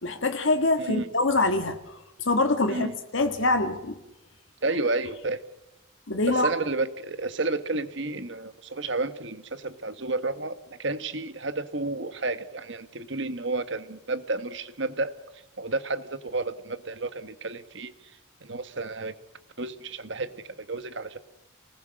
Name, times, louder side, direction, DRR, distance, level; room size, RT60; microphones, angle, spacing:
voice 1, 0.0-2.0 2.2-2.9 3.1-4.0 6.1-6.5, left 2 dB, 70° left, 6 dB, 1.7 m, -24 dB
voice 2, 4.6-5.4 6.3-15.1 15.6-17.9 18.4-19.2 19.6-21.2, right 2 dB, 60° right, 11 dB, 1.5 m, -31 dB
28.5 x 19.5 x 6.5 m, 0.94 s
head